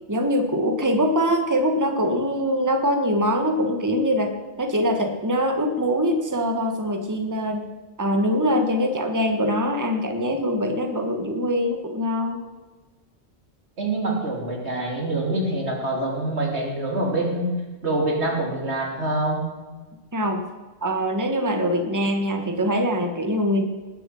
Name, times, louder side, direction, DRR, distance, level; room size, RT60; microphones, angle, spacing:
voice 1, 0.1-4.3 4.6-7.6 8.0-12.4 20.1-20.4 20.8-23.6, equal, 15° right, 5 dB, 1.4 m, -23 dB
voice 2, 13.8-17.5 17.8-19.4, right 2 dB, 85° right, 0 dB, 3.3 m, -25 dB
19.0 x 7.6 x 7.6 m, 1.3 s
omnidirectional pair, 1.1 m